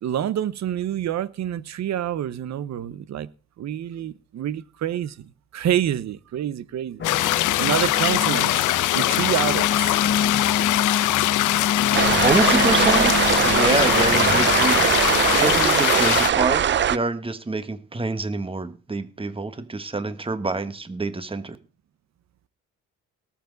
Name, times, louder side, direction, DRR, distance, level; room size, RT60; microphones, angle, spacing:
voice 1, 0.0-3.3 3.6-7.0 7.6-8.6 8.9-10.0 10.4-10.8, right 11 dB, 65° right, 1.0 m, -27 dB
sound 1, 7.0-16.3, left 15 dB, 85° left, 0.8 m, -22 dB
sound 2, 7.0-15.7, left 7 dB, 40° left, 0.7 m, -27 dB
sound 3, 11.9-17.0, right 9 dB, 40° right, 0.5 m, -21 dB
voice 2, 12.1-14.9 15.3-21.6, right 3 dB, 20° right, 1.5 m, -26 dB
19.0 x 7.5 x 4.0 m
cardioid pair, 90°, 30 cm